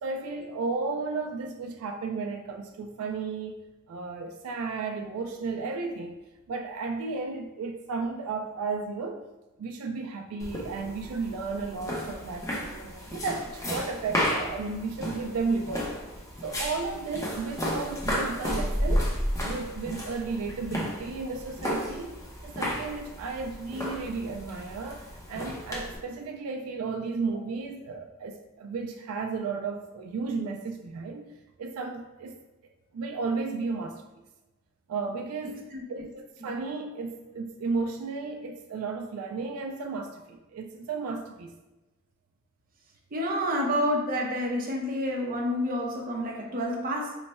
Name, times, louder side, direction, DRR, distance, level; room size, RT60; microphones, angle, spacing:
voice 1, 0.0-3.6 3.9-6.2 6.5-9.3 9.6-16.0 16.4-19.1 19.4-32.4 32.9-34.2 34.9-35.6 35.9-41.5, right 4 dB, 90° right, 3 dB, 0.3 m, -34 dB
sound 1, 10.4-26.0, equal, 15° left, 0.6 m, -33 dB
voice 2, 43.1-47.2, equal, 40° right, 0 dB, 0.6 m, -29 dB
3.1 x 2.2 x 4.1 m, 1.1 s
head